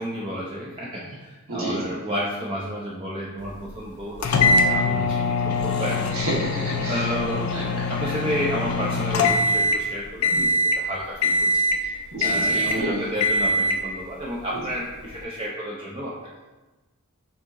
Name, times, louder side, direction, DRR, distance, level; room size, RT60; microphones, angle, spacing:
voice 1, 0.0-6.2 6.9-7.4 7.9-11.7 12.2-16.3, equal, 25° right, -4 dB, 0.4 m, -31 dB
voice 2, 1.5-1.8 6.1-8.2 11.8-13.0 14.5-14.6, right 1 dB, 65° right, -4 dB, 1.2 m, -31 dB
sound 1, 4.2-9.9 10.2-10.8 11.2-11.9 12.2-12.8 13.2-13.8, left 2 dB, 70° left, 0.4 m, -22 dB
6.1 x 2.8 x 2.5 m, 1.2 s
head